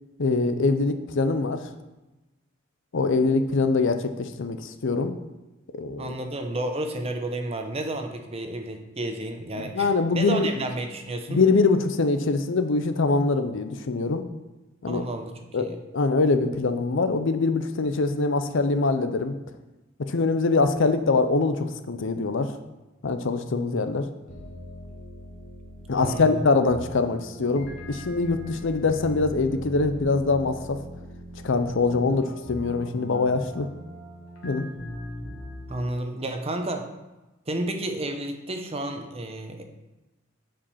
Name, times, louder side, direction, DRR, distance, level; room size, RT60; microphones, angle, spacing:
voice 1, 0.2-1.6 2.9-5.1 5.8-6.1 9.6-10.5 11.3-14.2 14.8-15.0 15.5-15.6 15.9-19.3 20.1-22.5 23.0-24.0 25.9-30.8 31.4-33.7 34.4-34.7, left 3 dB, 65° left, 9 dB, 0.6 m, -23 dB
voice 2, 6.0-11.4 14.9-15.8 25.9-26.4 35.7-36.9 37.5-39.6, right 1 dB, 30° right, 5 dB, 0.8 m, -31 dB
sound 1, 24.3-35.8, equal, 85° left, 1.6 m, -40 dB
7.1 x 5.0 x 5.7 m, 1.1 s
head